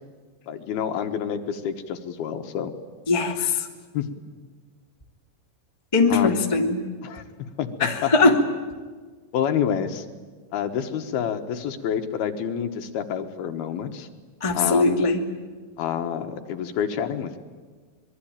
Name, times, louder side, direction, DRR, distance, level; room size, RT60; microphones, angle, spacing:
voice 1, 0.5-2.7 3.9-4.1 6.1-6.4 7.0-7.2 7.6-8.3 9.3-10.1 10.5-14.1 14.5-15.0 15.8-17.4, left 8 dB, 65° left, 6 dB, 2.8 m, -28 dB
voice 2, 3.1-3.7 5.9-6.8 7.8-8.4 14.4-15.2, left 3 dB, 25° left, 2 dB, 0.7 m, -20 dB
26.0 x 22.0 x 8.9 m, 1.5 s
omnidirectional pair, 5.4 m